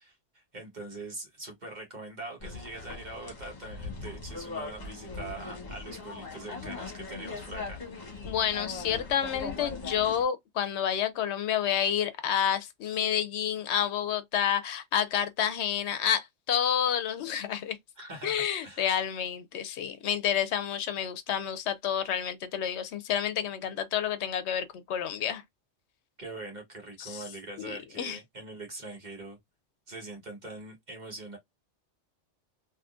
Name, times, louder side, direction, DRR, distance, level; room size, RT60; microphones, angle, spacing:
voice 1, 0.0-7.8 18.0-18.9 26.2-29.4 29.9-31.4, right 2 dB, 40° right, 1.4 m, -43 dB
sound 1, 2.4-10.2, left 4 dB, 40° left, 1.1 m, -40 dB
voice 2, 8.2-17.8 18.2-25.4 27.0-27.2 27.6-28.2, left 9 dB, 75° left, 0.8 m, -29 dB
3.5 x 2.7 x 2.4 m
omnidirectional pair, 1.2 m